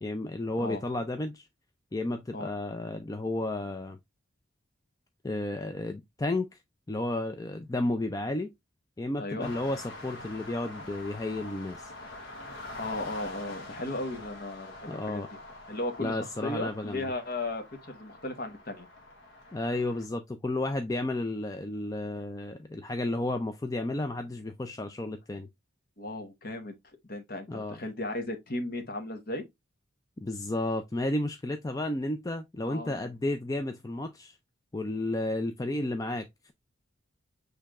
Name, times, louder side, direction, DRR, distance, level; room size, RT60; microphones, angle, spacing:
voice 1, 0.0-1.5 1.9-4.0 5.2-6.6 6.9-8.5 9.0-11.9 14.9-15.3 16.0-17.1 19.5-25.5 27.5-27.8 30.2-34.4 34.7-36.5, left 2 dB, 15° left, 0.4 m, -32 dB
voice 2, 9.2-9.5 12.7-15.3 15.7-18.9 26.0-26.7 27.1-29.4 32.6-33.1, left 2 dB, 45° left, 1.1 m, -36 dB
sound 1, 9.4-20.1, left 2 dB, 75° left, 1.3 m, -45 dB
6.4 x 3.3 x 2.4 m
head